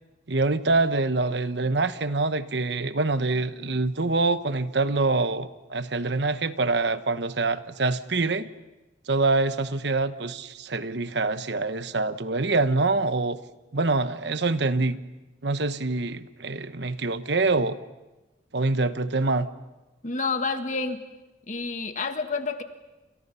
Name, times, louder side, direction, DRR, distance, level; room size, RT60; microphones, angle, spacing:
voice 1, 0.3-8.5 9.1-13.4 13.7-15.0 15.4-17.8 18.5-19.5, right 3 dB, 65° right, 11 dB, 1.1 m, -25 dB
voice 2, 20.0-21.0 21.5-22.6, left 4 dB, 40° left, 7 dB, 1.8 m, -29 dB
30.0 x 28.0 x 5.7 m, 1.1 s
head